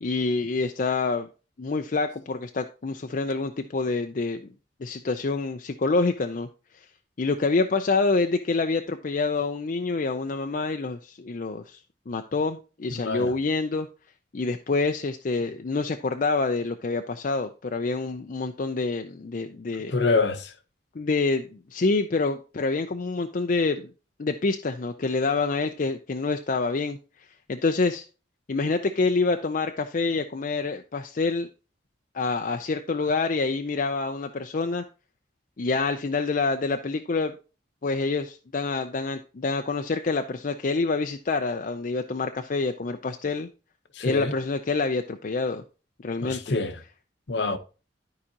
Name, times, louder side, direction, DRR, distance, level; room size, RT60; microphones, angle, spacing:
voice 1, 0.0-1.3 1.6-4.5 4.8-6.5 7.2-11.8 12.1-13.9 14.3-19.9 21.0-23.9 24.2-27.0 27.5-28.0 28.5-31.5 32.1-34.8 35.6-37.3 37.8-43.5 44.0-45.6 46.0-46.4, left 3 dB, 45° left, 0.5 m, -27 dB
voice 2, 12.9-13.3 19.9-20.5 43.9-44.3 46.2-46.8 47.3-47.6, left 3 dB, 70° left, 0.9 m, -26 dB
12.5 x 4.9 x 2.8 m
head